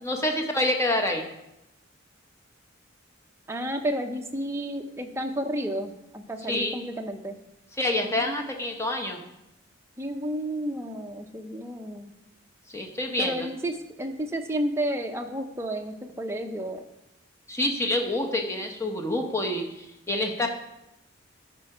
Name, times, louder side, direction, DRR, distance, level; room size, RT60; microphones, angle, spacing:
voice 1, 0.0-1.3 6.5-6.8 7.8-9.2 12.7-13.5 17.5-20.5, left 1 dB, 15° left, 3 dB, 0.9 m, -27 dB
voice 2, 3.5-7.4 8.0-8.5 10.0-12.1 13.2-16.9, right 1 dB, 15° right, 3 dB, 0.6 m, -31 dB
12.0 x 4.3 x 4.9 m, 0.90 s
head